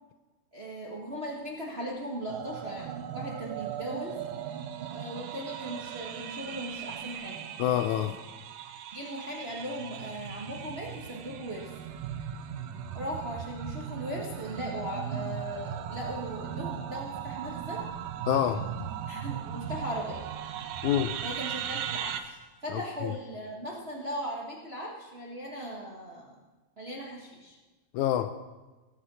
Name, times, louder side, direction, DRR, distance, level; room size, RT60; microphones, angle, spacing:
voice 1, 0.5-4.2 4.9-7.4 8.9-11.7 12.9-17.8 19.1-20.3 21.2-26.3 26.8-27.6, equal, 55° right, -3 dB, 0.6 m, -38 dB
sound 1, 2.3-22.2, right 9 dB, 75° right, 2.3 m, -38 dB
voice 2, 7.6-8.2 18.3-18.7 20.8-21.2 22.7-23.1 27.9-28.3, left 11 dB, 85° left, 9 dB, 1.7 m, -27 dB
19.5 x 6.7 x 6.2 m, 1.2 s
omnidirectional pair, 3.9 m